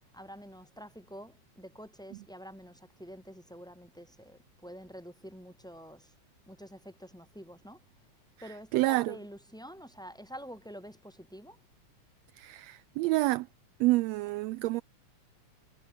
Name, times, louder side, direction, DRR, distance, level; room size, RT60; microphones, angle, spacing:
voice 1, 0.1-6.1 6.5-7.8 8.4-11.6, equal, ahead, 6.5 m, -47 dB
voice 2, 8.4-9.2 12.4-13.5 13.8-14.8, right 19 dB, 80° right, 1.6 m, -28 dB
omnidirectional pair, 3.3 m